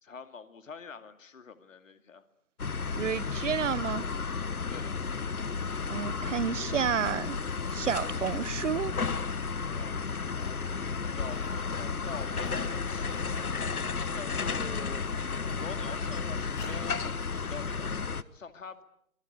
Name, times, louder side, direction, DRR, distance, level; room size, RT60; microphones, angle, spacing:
voice 1, 0.0-2.2 4.7-5.0 9.6-10.0 11.0-13.8 14.1-15.1 15.6-18.8, left 5 dB, 65° left, 2.5 m, -45 dB
sound 1, 2.6-18.2, left 5 dB, 85° left, 1.2 m, -33 dB
voice 2, 3.0-4.1 5.9-7.4 7.7-8.9, right 7 dB, 60° right, 0.9 m, -30 dB
sound 2, 8.3-8.4 9.1-9.6 9.9-10.6 10.9-11.6 11.9-16.9 17.6-17.7, left 3 dB, 30° left, 7.8 m, -51 dB
25.5 x 20.0 x 8.0 m
figure-of-eight pair, 135°, 43 cm